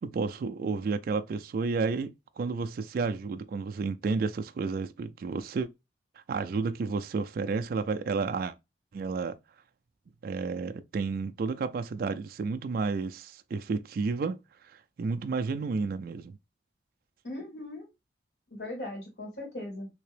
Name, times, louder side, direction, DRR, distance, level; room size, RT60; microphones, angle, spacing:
voice 1, 0.0-5.7 6.3-8.5 8.9-9.4 10.2-14.4 15.0-16.4, right 4 dB, 55° right, 0.3 m, -31 dB
voice 2, 17.2-17.9 18.5-19.9, left 1 dB, 75° left, 2.2 m, -39 dB
3.4 x 2.8 x 3.2 m
head